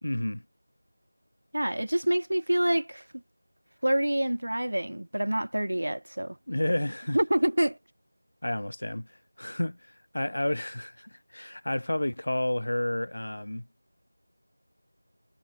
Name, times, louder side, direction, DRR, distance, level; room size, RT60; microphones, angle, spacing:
voice 1, 0.0-0.4 6.5-7.2 8.4-13.7, left 1 dB, 60° left, 1.1 m, -31 dB
voice 2, 1.5-3.0 3.8-6.4 7.1-7.8, right 1 dB, 70° right, 0.7 m, -26 dB
figure-of-eight pair, 170°, 0 cm